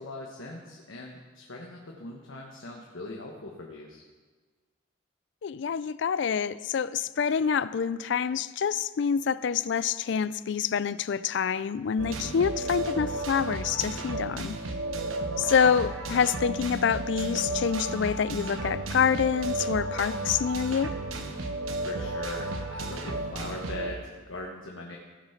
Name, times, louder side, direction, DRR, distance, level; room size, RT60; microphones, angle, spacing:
voice 1, 0.0-4.0 15.4-15.6 21.8-25.0, left 2 dB, 80° left, -1 dB, 1.2 m, -41 dB
voice 2, 5.4-14.6 15.4-20.9, left 7 dB, 60° left, 16 dB, 0.3 m, -27 dB
sound 1, 12.0-23.9, right 2 dB, 90° right, 1.1 m, -33 dB
16.0 x 5.6 x 5.8 m, 1.4 s
head